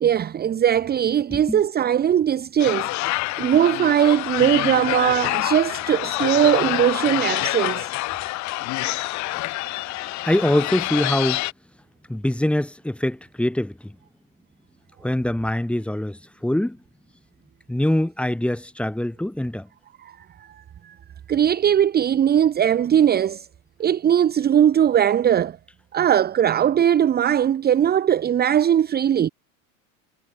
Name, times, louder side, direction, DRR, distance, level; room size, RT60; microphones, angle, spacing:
voice 1, 0.0-7.9 20.0-20.1 20.4-20.5 20.8-20.9 21.3-23.5 23.8-25.6 25.9-29.3, right 9 dB, 25° right, 1.1 m, -20 dB
voice 2, 1.3-1.6 10.2-11.4 12.1-14.0 15.0-16.8 17.7-19.7, left 1 dB, 5° left, 3.5 m, -24 dB
sound 1, 2.6-11.5, left 20 dB, 45° left, 1.2 m, -26 dB
supercardioid pair, 135°, 41 cm